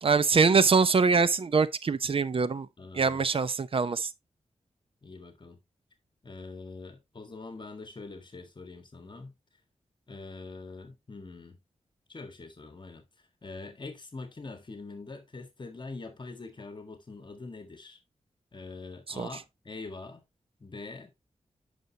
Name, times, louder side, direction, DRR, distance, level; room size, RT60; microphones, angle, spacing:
voice 1, 0.0-2.7 2.9-4.1 19.2-19.3, right 5 dB, 50° right, 0.7 m, -24 dB
voice 2, 2.8-3.3 5.0-5.6 6.2-9.3 10.1-11.6 12.1-13.1 13.4-18.0 18.5-20.2 20.6-21.1, left 3 dB, 40° left, 1.7 m, -44 dB
9.4 x 6.2 x 2.9 m
wide cardioid pair, 85°, 12 cm